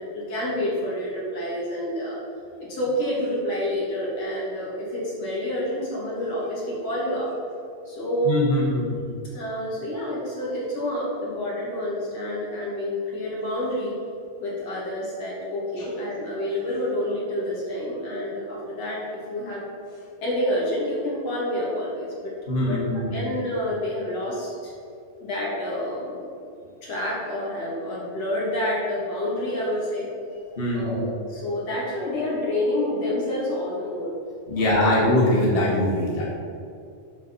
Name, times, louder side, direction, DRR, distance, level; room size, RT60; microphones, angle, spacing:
voice 1, 0.0-2.2 2.6-7.3 7.9-8.4 9.3-13.9 14.4-19.0 19.3-22.8 23.1-24.7 25.2-26.2 26.8-30.1 30.7-34.1 34.5-34.9, left 1 dB, 50° left, -6 dB, 3.6 m, -28 dB
voice 2, 8.2-9.0 22.5-23.2 30.6-31.0 34.5-36.3, left 1 dB, 25° left, -5 dB, 1.6 m, -22 dB
12.0 x 4.9 x 5.5 m, 2.4 s
omnidirectional pair, 3.7 m